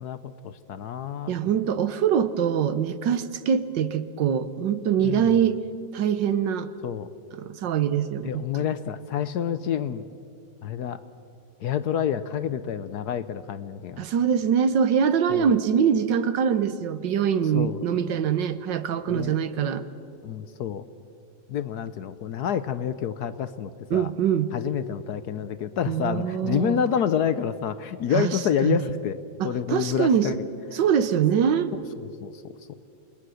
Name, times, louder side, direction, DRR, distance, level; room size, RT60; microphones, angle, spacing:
voice 1, 0.0-1.3 5.0-5.4 6.8-7.1 8.2-10.0 10.6-11.0 11.6-14.0 15.3-15.5 17.5-17.8 19.1-19.3 20.2-20.8 21.5-24.1 24.5-29.2 29.4-30.4 30.7-30.8 31.7-32.7, left 8 dB, 65° left, 13 dB, 1.1 m, -28 dB
voice 2, 1.3-5.6 5.9-6.7 7.4-8.4 14.0-19.8 23.9-24.5 25.9-26.8 28.1-28.8 29.4-30.3 30.7-31.7, right 8 dB, 70° right, 12 dB, 1.5 m, -23 dB
28.5 x 20.5 x 6.4 m, 2.5 s
omnidirectional pair, 2.1 m